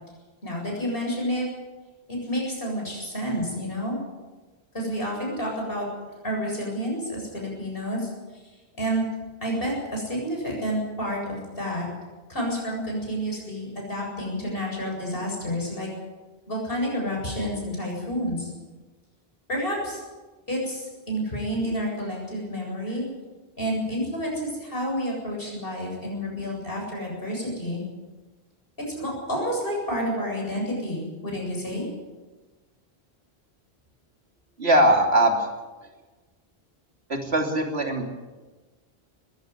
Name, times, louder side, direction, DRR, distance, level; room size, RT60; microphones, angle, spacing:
voice 1, 0.4-1.5 2.1-4.0 4.7-5.9 6.2-8.1 8.8-9.1 9.4-11.9 12.3-15.9 16.5-18.5 19.5-20.0 20.5-23.0 23.6-27.8 28.9-31.9, equal, 65° left, -1 dB, 8.1 m, -29 dB
voice 2, 34.6-35.5 37.1-38.1, right 1 dB, 85° right, 3 dB, 3.4 m, -20 dB
21.0 x 16.0 x 9.6 m, 1.3 s
omnidirectional pair, 1.0 m